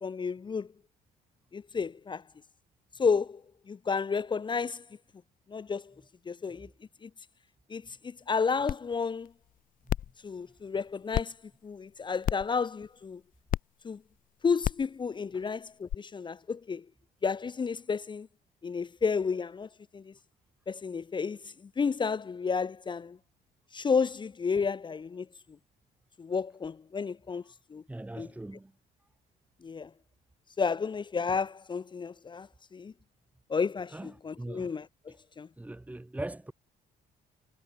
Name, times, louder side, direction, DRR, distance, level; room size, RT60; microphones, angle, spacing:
voice 1, 0.0-0.7 1.5-2.2 3.0-3.4 3.7-4.8 5.5-5.8 6.3-6.7 7.0-7.1 7.7-9.3 10.2-11.3 11.6-13.2 13.8-14.0 14.4-16.8 17.2-18.3 18.6-19.7 19.9-20.1 20.7-21.4 21.8-23.2 23.7-25.3 26.2-27.4 27.7-27.8 28.2-28.3 29.6-29.9 30.6-32.5 32.7-32.9 33.5-34.9 35.4-35.5, left 5 dB, 25° left, 1.1 m, -31 dB
sound 1, 8.7-8.8 9.2-9.3 9.9-10.1 11.1-11.2 12.2-12.5 13.5-13.6 14.6-14.9 15.9-16.0, left 11 dB, 55° left, 1.0 m, -29 dB
voice 2, 27.9-28.7 33.9-34.7 35.1-35.2 35.6-36.5, right 1 dB, 10° right, 2.1 m, -41 dB
cardioid pair, 110°, 17 cm